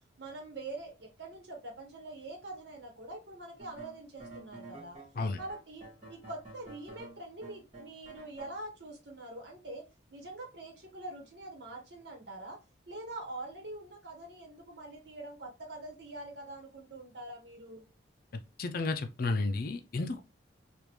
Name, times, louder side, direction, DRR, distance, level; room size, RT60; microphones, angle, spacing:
voice 1, 0.2-5.0 5.4-9.8 10.1-12.6 12.9-17.8, right 2 dB, 60° right, 1.2 m, -44 dB
sound 1, 3.6-8.5, right 2 dB, 35° right, 1.7 m, -49 dB
voice 2, 18.6-20.2, left 3 dB, 45° left, 0.4 m, -32 dB
3.5 x 2.5 x 3.0 m
head